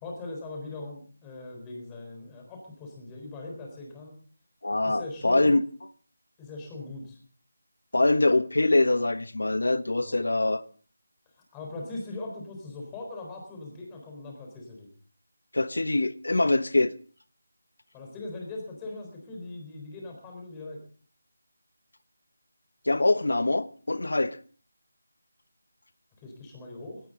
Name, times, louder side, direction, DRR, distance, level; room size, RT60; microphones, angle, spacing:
voice 1, 0.0-4.2 4.8-5.5 6.4-7.2 10.0-10.2 11.4-14.9 17.9-20.8 26.2-27.0, left 2 dB, 10° left, 4.1 m, -40 dB
voice 2, 4.6-5.6 7.9-10.6 15.5-16.9 22.8-24.4, left 2 dB, 80° left, 1.0 m, -24 dB
18.5 x 17.5 x 3.8 m
figure-of-eight pair, 175°, 0 cm